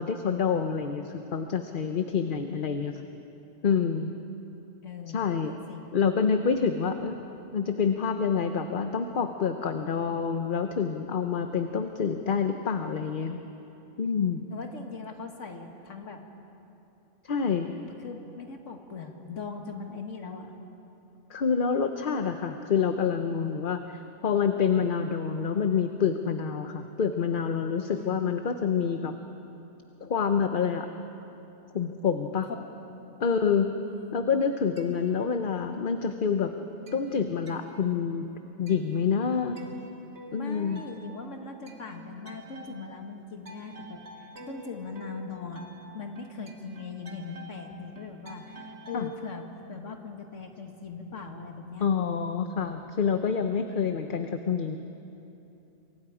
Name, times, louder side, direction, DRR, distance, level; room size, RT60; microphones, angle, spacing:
voice 1, 0.0-3.0 3.6-4.1 5.1-5.5 5.9-7.2 7.5-13.4 14.0-14.4 17.2-17.8 21.3-29.1 30.0-30.9 31.7-32.5 33.2-33.7 34.1-36.5 36.9-38.3 38.6-39.6 40.3-40.8 48.9-49.1 51.8-54.8, left 6 dB, 45° left, 6 dB, 0.9 m, -27 dB
voice 2, 4.8-5.8 14.5-16.2 18.0-20.5 27.9-28.3 32.4-32.6 33.8-34.2 40.4-45.6 45.9-51.9, left 4 dB, 75° left, 3 dB, 2.1 m, -40 dB
sound 1, 34.7-36.0 36.3-49.2, right 1 dB, 55° right, 2.0 m, -48 dB
27.5 x 24.0 x 5.0 m, 2.9 s
omnidirectional pair, 1.3 m